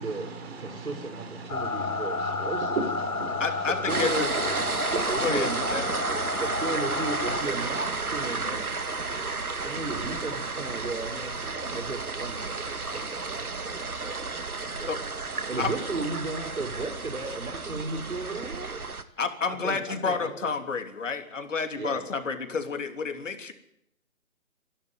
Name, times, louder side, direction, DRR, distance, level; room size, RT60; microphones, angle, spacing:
voice 1, 0.0-5.0, right 4 dB, 45° right, 7 dB, 4.5 m, -38 dB
voice 2, 0.6-2.7 3.9-4.3 5.1-6.0 6.4-8.7 9.6-14.9 15.5-18.8 19.5-20.3 21.8-22.0, right 3 dB, 70° right, 6 dB, 5.9 m, -35 dB
sound 1, 1.5-7.4, left 3 dB, 85° left, 2.1 m, -31 dB
voice 3, 3.4-4.3 5.2-5.8 14.9-15.0 15.6-15.7 19.2-23.5, left 5 dB, 60° left, 7 dB, 3.3 m, -30 dB
sound 2, 3.9-19.0, right 4 dB, 85° right, 2.2 m, -32 dB
25.5 x 12.0 x 9.7 m, 0.82 s
figure-of-eight pair, 150°, 43 cm